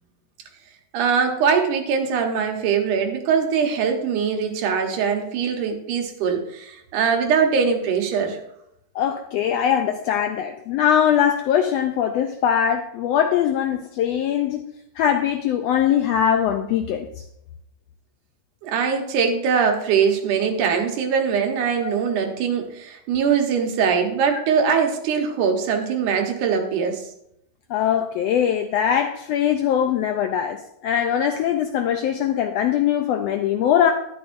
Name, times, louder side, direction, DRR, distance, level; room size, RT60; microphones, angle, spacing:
voice 1, 0.9-8.4 18.6-27.0, right 6 dB, 90° right, 3 dB, 2.6 m, -22 dB
voice 2, 8.9-14.7 15.0-17.1 21.8-21.9 27.7-30.6 30.8-33.9, left 9 dB, 90° left, 6 dB, 1.4 m, -21 dB
11.5 x 10.0 x 2.6 m, 0.78 s
omnidirectional pair, 3.4 m